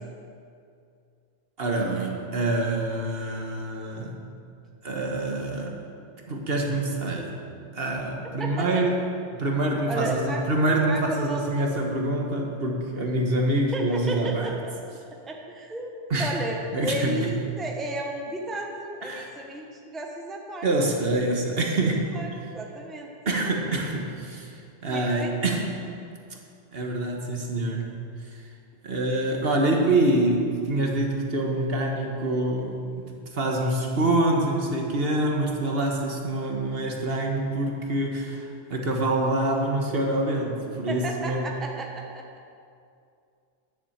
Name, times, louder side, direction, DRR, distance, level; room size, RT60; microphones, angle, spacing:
voice 1, 1.6-4.2 4.8-5.8 6.3-7.3 7.7-9.0 9.3-14.5 16.1-16.3 16.7-17.3 19.0-19.3 20.6-22.2 23.2-25.7 26.7-27.8 28.2-28.4 28.8-32.8 33.0-41.5, right 2 dB, 55° right, 1 dB, 1.5 m, -26 dB
voice 2, 8.4-8.8 9.9-10.4 10.9-11.6 13.7-14.7 15.2-15.9 16.2-16.6 16.8-20.7 22.1-22.3 22.5-23.1 24.9-25.5 40.9-42.3, right 1 dB, ahead, 0 dB, 0.9 m, -33 dB
10.5 x 7.1 x 7.2 m, 2.4 s
omnidirectional pair, 1.2 m